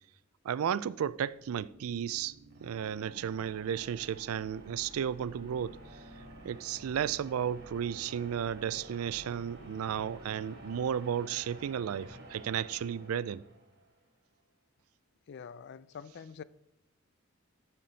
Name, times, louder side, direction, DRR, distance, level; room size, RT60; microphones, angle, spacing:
voice 1, 0.4-2.3 2.6-5.8 6.4-13.4, right 8 dB, 85° right, 0.4 m, -33 dB
sound 1, 0.9-13.8, right 1 dB, 50° right, 2.2 m, -51 dB
voice 2, 15.3-16.4, left 6 dB, 55° left, 0.4 m, -45 dB
13.5 x 5.9 x 4.0 m
head